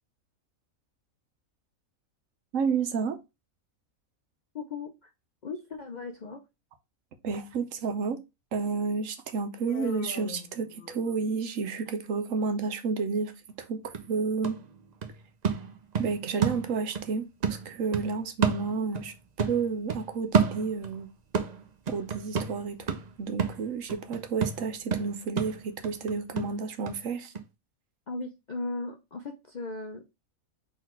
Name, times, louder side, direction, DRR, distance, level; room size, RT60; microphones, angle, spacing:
voice 1, 2.5-3.2 7.2-8.2 8.5-13.3 13.6-14.6 16.0-17.3 17.6-19.1 19.5-21.1 21.9-27.3, right 5 dB, 70° right, 1.1 m, -31 dB
voice 2, 4.5-5.1 5.4-6.4 28.1-30.1, left 3 dB, 55° left, 0.5 m, -37 dB
Human voice, 9.7-11.4, left 7 dB, 75° left, 1.2 m, -42 dB
sound 1, 13.5-13.6 13.9-17.1 17.4-19.1 19.4-21.0 21.3-27.0 27.3-27.4, right 6 dB, 50° right, 0.5 m, -30 dB
4.1 x 3.1 x 4.2 m
omnidirectional pair, 1.4 m